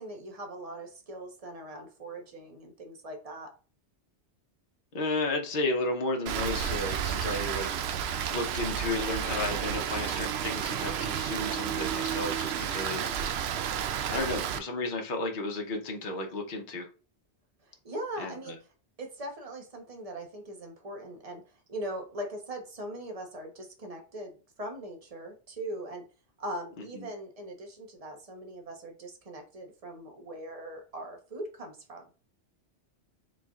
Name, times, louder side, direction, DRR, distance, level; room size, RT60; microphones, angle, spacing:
voice 1, 0.0-3.5 7.0-7.2 13.0-13.2 17.6-18.6 19.0-21.4 21.7-26.0 26.4-32.0, right 1 dB, 35° right, 1.1 m, -40 dB
voice 2, 4.9-13.4 14.1-16.9 18.2-18.5 26.9-27.1, left 2 dB, 50° left, 1.0 m, -33 dB
Rain, 6.3-14.6, right 9 dB, 70° right, 0.8 m, -31 dB
4.4 x 4.0 x 2.4 m
omnidirectional pair, 1.2 m